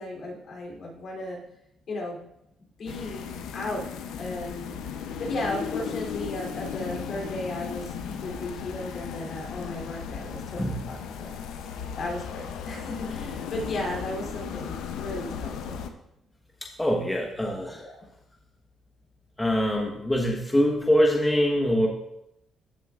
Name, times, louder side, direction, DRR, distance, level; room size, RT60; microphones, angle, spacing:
voice 1, 0.0-1.4 1.9-2.2 2.8-3.9 4.2-4.8 5.2-15.8 17.7-17.9, left 1 dB, 55° left, -2 dB, 3.2 m, -35 dB
sound 1, 2.9-15.9, left 7 dB, 90° left, 0.7 m, -36 dB
voice 2, 16.8-17.8 19.4-21.9, equal, 10° left, 0 dB, 1.2 m, -23 dB
15.0 x 7.0 x 2.5 m, 0.82 s
cardioid pair, 90°, 0 cm